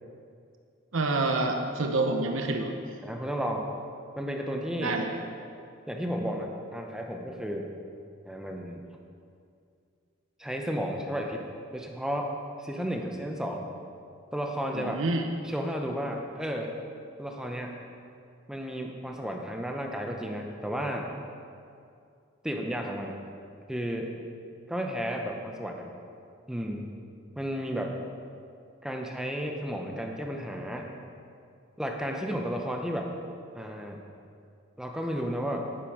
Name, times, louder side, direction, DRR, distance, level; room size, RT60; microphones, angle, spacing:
voice 1, 0.9-2.7 4.8-5.2 14.7-15.3, right 2 dB, 85° right, 4 dB, 0.9 m, -28 dB
voice 2, 3.0-3.7 4.2-5.0 5.9-7.7 8.2-8.9 10.4-11.4 11.7-12.3 12.6-13.7 14.3-15.0 15.4-16.8 17.2-17.8 18.5-21.1 22.4-23.2 23.7-24.2 24.7-25.9 26.5-26.9 27.4-27.9 28.8-30.9 31.8-33.1 33.5-34.0 34.8-35.7, equal, 5° right, 2 dB, 0.7 m, -33 dB
10.0 x 9.8 x 4.9 m, 2.4 s
head